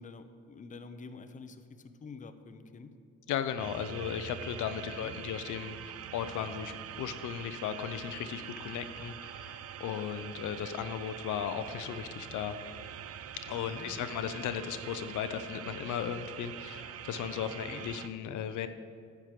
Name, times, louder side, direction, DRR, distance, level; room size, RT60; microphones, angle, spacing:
voice 1, 0.0-2.9 4.9-5.2 13.7-14.4 17.5-17.8, left 4 dB, 25° left, 9 dB, 0.6 m, -48 dB
voice 2, 3.3-12.6 13.3-18.7, left 9 dB, 80° left, 10 dB, 0.6 m, -36 dB
sound 1, 3.6-18.1, right 9 dB, 50° right, 0.5 m, -44 dB
9.9 x 4.7 x 7.4 m, 2.3 s
cardioid pair, 90°, 30 cm